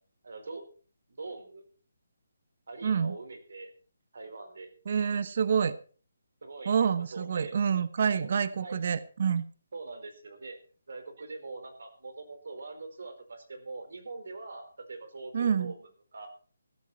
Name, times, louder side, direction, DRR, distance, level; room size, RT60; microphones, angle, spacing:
voice 1, 0.2-0.6 1.2-1.6 2.7-3.7 4.1-4.7 6.4-6.7 7.1-7.5 8.2-8.3 8.6-8.8 9.7-10.6 10.9-16.3, right 3 dB, 70° right, 7 dB, 4.8 m, -43 dB
voice 2, 2.8-3.2 4.9-5.7 6.6-9.4 15.3-15.7, right 7 dB, 50° right, 15 dB, 1.0 m, -27 dB
16.0 x 13.0 x 4.5 m, 0.40 s
hypercardioid pair, 160°, 0 cm